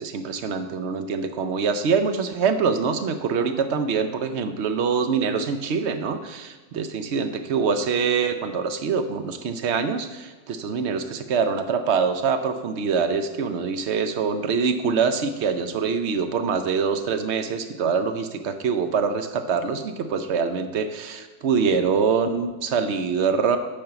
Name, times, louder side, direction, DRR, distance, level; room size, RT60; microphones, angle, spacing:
voice 1, 0.0-23.6, right 5 dB, 55° right, 9 dB, 0.8 m, -24 dB
8.7 x 5.3 x 5.8 m, 1.3 s
omnidirectional pair, 1.7 m